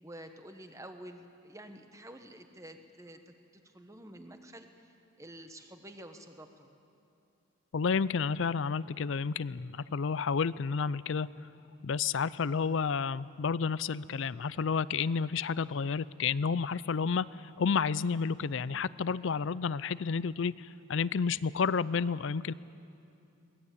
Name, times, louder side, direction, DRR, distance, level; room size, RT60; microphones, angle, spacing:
voice 1, 0.0-6.7, right 1 dB, 15° right, 7 dB, 1.2 m, -49 dB
voice 2, 7.7-11.3 11.8-22.5, left 5 dB, 60° left, 18 dB, 0.4 m, -31 dB
22.0 x 19.0 x 8.5 m, 2.6 s
head